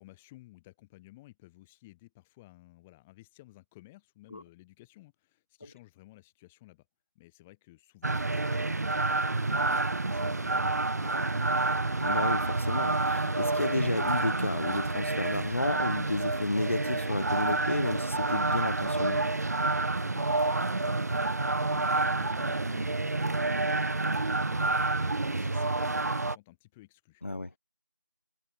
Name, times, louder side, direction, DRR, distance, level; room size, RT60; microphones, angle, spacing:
voice 1, 0.0-6.9 7.1-11.8 20.0-27.6, left 19 dB, ahead, 0.7 m, -55 dB
sound 1, 8.0-26.3, right 2 dB, 55° right, 0.4 m, -29 dB
voice 2, 12.0-19.2 27.2-27.5, left 2 dB, 40° left, 0.5 m, -32 dB
figure-of-eight pair, 170°, 11 cm